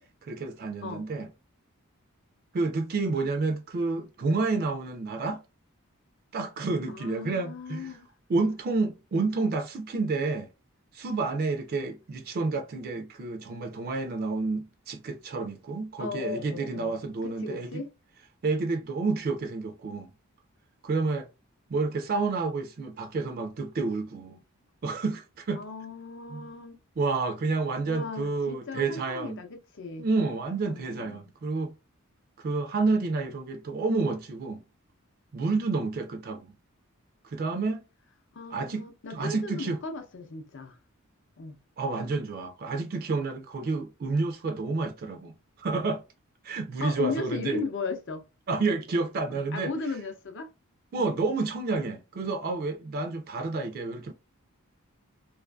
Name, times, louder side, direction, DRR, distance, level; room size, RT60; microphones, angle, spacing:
voice 1, 0.2-1.3 2.5-5.4 6.3-8.0 8.3-10.5 10.9-17.8 18.4-20.1 20.8-21.3 21.7-24.4 24.8-25.6 26.3-26.5 27.0-29.4 30.0-31.7 32.4-34.6 35.3-36.6 37.2-37.9 38.5-39.8 41.8-45.3 45.6-46.0 46.4-47.6 48.5-49.7 50.9-54.1, right 3 dB, 45° right, 0.3 m, -29 dB
voice 2, 6.9-8.1 16.0-17.9 25.6-26.8 27.8-30.1 30.7-31.3 38.3-40.8 41.4-41.6 46.8-48.2 49.3-50.5 50.9-51.2, left 4 dB, 55° left, 0.6 m, -36 dB
2.5 x 2.4 x 2.2 m
head